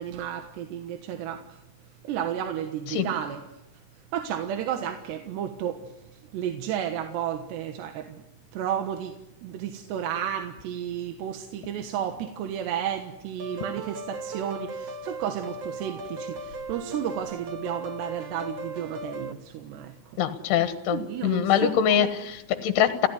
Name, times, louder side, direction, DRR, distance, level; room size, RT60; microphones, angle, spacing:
voice 1, 0.0-1.6 2.0-3.4 4.1-8.2 8.5-9.1 9.4-20.2 20.9-22.1, right 9 dB, 90° right, 6 dB, 3.6 m, -32 dB
sound 1, 13.4-19.3, right 2 dB, 65° right, 1.6 m, -37 dB
voice 2, 20.2-23.1, left 9 dB, 75° left, 8 dB, 3.4 m, -24 dB
29.0 x 16.5 x 9.7 m, 0.89 s
omnidirectional pair, 4.8 m